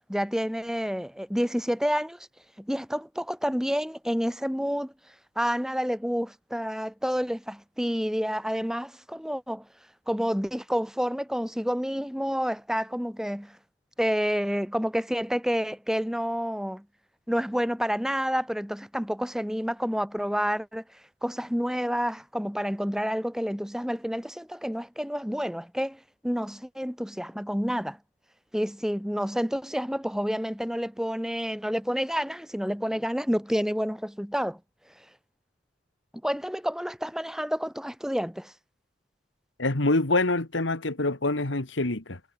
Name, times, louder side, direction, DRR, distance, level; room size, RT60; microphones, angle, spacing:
voice 1, 0.1-2.2 2.6-4.9 5.4-9.7 10.1-13.6 14.0-16.8 17.3-20.8 21.2-28.0 28.5-34.6 36.2-38.5, equal, 5° right, 4.0 m, -29 dB
voice 2, 39.6-42.2, left 2 dB, 90° left, 2.0 m, -25 dB
head